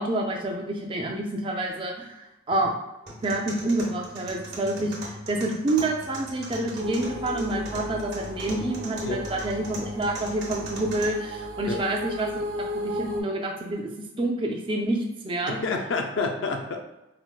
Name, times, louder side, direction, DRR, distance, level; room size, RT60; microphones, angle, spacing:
voice 1, 0.0-2.2 2.5-2.7 3.2-12.3 12.6-15.6, right 2 dB, 25° right, 1 dB, 0.3 m, -28 dB
sound 1, 3.1-11.1, right 1 dB, 55° right, 0.9 m, -40 dB
sound 2, 6.8-13.2, left 1 dB, 80° right, 0.5 m, -35 dB
voice 2, 15.5-16.8, left 3 dB, 70° left, 3 dB, 0.4 m, -28 dB
4.4 x 2.0 x 2.2 m, 0.96 s
head